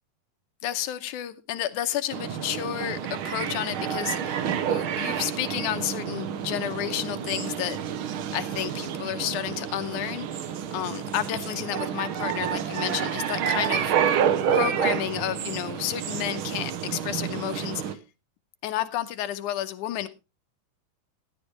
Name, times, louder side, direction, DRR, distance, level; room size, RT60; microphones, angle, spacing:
voice 1, 0.6-7.8 8.3-13.9 14.5-18.0 18.6-20.1, left 12 dB, 80° left, 2.3 m, -31 dB
sound 1, 2.1-17.9, right 8 dB, 85° right, 1.1 m, -29 dB
14.0 x 11.5 x 3.3 m
omnidirectional pair, 3.7 m